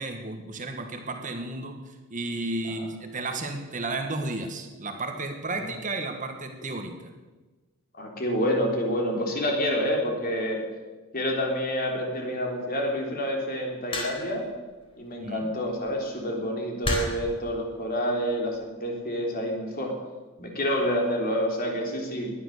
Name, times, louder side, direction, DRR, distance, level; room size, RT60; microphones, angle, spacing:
voice 1, 0.0-7.1 15.2-15.5, right 2 dB, 35° right, 5 dB, 1.6 m, -33 dB
voice 2, 8.0-10.6 11.1-14.5 15.0-19.9 20.4-22.3, equal, 45° left, 0 dB, 3.7 m, -28 dB
sound 1, 13.9-14.4 15.7-15.9 16.8-17.3 18.3-18.6, left 1 dB, 25° left, 3.9 m, -30 dB
19.0 x 11.0 x 6.7 m, 1.2 s
head